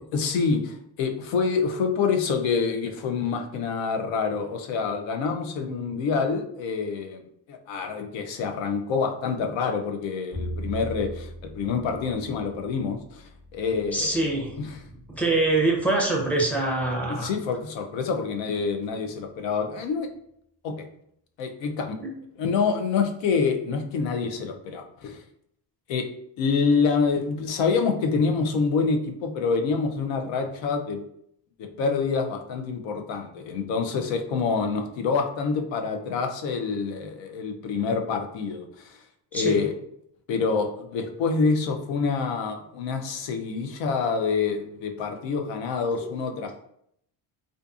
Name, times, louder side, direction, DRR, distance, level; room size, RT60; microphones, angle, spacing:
voice 1, 0.1-7.2 7.5-14.2 14.6-14.7 17.1-20.1 20.6-20.9 21.4-22.0 22.4-25.2 25.9-26.1 26.4-31.0 31.8-39.0 39.3-39.7 40.3-46.5, left 5 dB, 85° left, 4 dB, 0.5 m, -26 dB
Bowed string instrument, 10.3-16.5, equal, 55° left, 1.1 m, -40 dB
voice 2, 13.9-14.6 14.9-17.3 22.0-22.2 39.3-39.6 46.0-46.1, right 2 dB, 5° left, -3 dB, 0.5 m, -25 dB
2.5 x 2.5 x 2.3 m, 0.73 s
cardioid pair, 120°, 44 cm